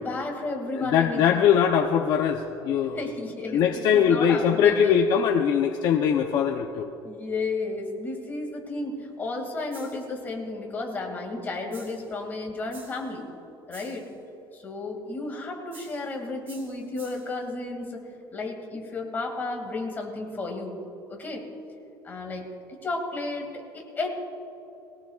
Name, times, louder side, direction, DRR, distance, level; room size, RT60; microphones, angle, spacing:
voice 1, 0.0-1.4 3.0-5.0 7.0-13.2 13.7-14.0 14.5-18.0 18.3-20.8 21.1-21.4 22.0-22.5 22.8-24.1, left 3 dB, 20° left, 1 dB, 2.3 m, -33 dB
voice 2, 0.7-3.1 3.5-6.9, left 8 dB, 55° left, 3 dB, 0.7 m, -22 dB
sound 1, 9.7-10.1 11.7-12.1 12.7-13.1 13.7-14.1 15.7-16.1 16.5-17.4, right 3 dB, 25° right, 3.2 m, -50 dB
20.0 x 17.5 x 2.4 m, 2.9 s
cardioid pair, 155°, 8 cm